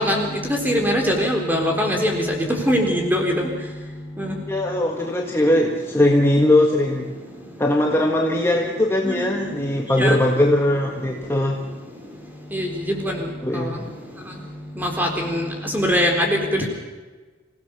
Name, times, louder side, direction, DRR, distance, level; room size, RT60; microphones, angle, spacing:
voice 1, 0.0-3.5 4.2-4.3 9.0-9.5 10.0-10.2 12.5-13.3 13.5-13.7 14.8-16.7, equal, 10° right, 2 dB, 4.0 m, -22 dB
voice 2, 4.5-7.1 7.6-11.6 13.4-13.8, left 1 dB, 15° left, 0 dB, 1.6 m, -20 dB
26.5 x 16.5 x 6.9 m, 1.3 s
head